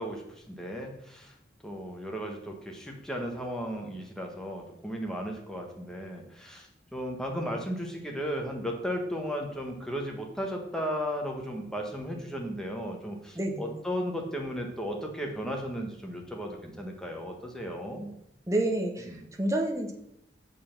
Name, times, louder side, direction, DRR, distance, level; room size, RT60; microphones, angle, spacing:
voice 1, 0.0-1.3 1.6-18.1 19.1-19.2, equal, 5° left, 1 dB, 1.3 m, -35 dB
voice 2, 13.4-13.8 18.5-19.1 19.4-19.9, right 1 dB, 15° right, 2 dB, 1.0 m, -28 dB
6.8 x 5.5 x 5.9 m, 0.77 s
head